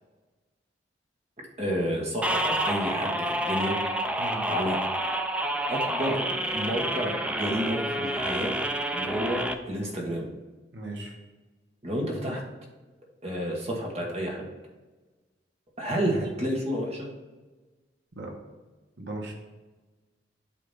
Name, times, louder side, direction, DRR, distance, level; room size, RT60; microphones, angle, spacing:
voice 1, 1.6-3.8 4.5-4.8 5.7-6.2 6.5-8.5 8.9-10.3 11.8-12.4 13.2-14.5 15.8-17.1, equal, 35° right, 0 dB, 1.3 m, -30 dB
sound 1, 2.2-9.5, right 1 dB, 5° right, 0.4 m, -29 dB
voice 2, 10.7-11.1 18.2-18.3 19.0-19.3, right 2 dB, 75° right, 0 dB, 1.4 m, -37 dB
8.4 x 2.9 x 5.5 m, 1.2 s
head